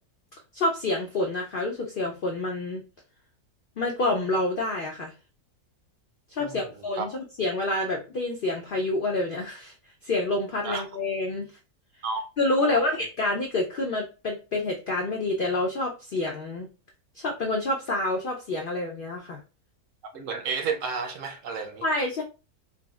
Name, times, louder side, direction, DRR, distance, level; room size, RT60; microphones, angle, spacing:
voice 1, 0.5-2.8 3.8-5.1 6.3-9.7 10.0-11.5 12.4-16.7 17.1-19.4 21.8-22.2, left 2 dB, 85° left, 0.4 m, -28 dB
voice 2, 6.4-7.1 10.6-10.8 12.0-12.2 12.6-12.9 20.1-21.8, right 5 dB, 70° right, 0.8 m, -32 dB
3.6 x 2.0 x 2.2 m
omnidirectional pair, 1.6 m